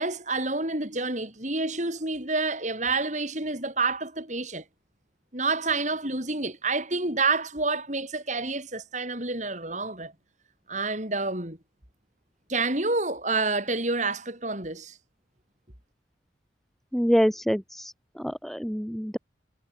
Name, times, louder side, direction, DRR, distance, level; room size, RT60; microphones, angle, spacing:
voice 1, 0.0-4.6 5.3-10.1 10.7-11.6 12.5-15.0, right 3 dB, 40° right, 6.8 m, -28 dB
voice 2, 16.9-19.2, equal, ahead, 7.8 m, -26 dB
head